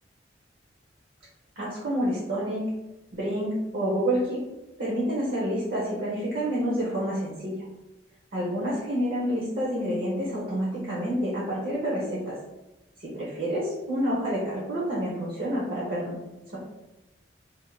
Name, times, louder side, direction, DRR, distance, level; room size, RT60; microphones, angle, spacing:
voice 1, 1.6-2.6 3.1-4.4 4.8-7.5 8.3-12.4 13.0-16.2 16.5-16.6, equal, 60° right, -6 dB, 0.9 m, -28 dB
2.8 x 2.1 x 3.9 m, 0.98 s
head